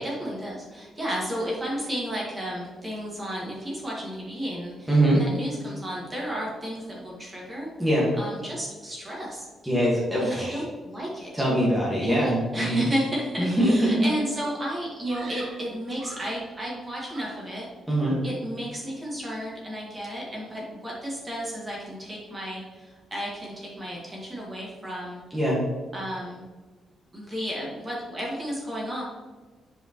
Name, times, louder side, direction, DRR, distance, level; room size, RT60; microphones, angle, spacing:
voice 1, 0.0-7.7 8.2-9.5 10.2-11.4 12.0-17.7 18.2-25.2 25.9-26.4 27.1-29.0, equal, 20° right, -4 dB, 2.1 m, -33 dB
voice 2, 4.9-5.2 7.8-8.1 9.6-10.6 11.3-12.9 13.4-14.1 17.9-18.2 25.3-25.6, right 1 dB, ahead, -7 dB, 1.8 m, -23 dB
Screaming, 15.1-16.5 17.0-17.7 18.0-18.4, right 3 dB, 70° right, 1.2 m, -45 dB
7.9 x 4.9 x 3.1 m, 1.3 s
cardioid pair, 130°, 0 cm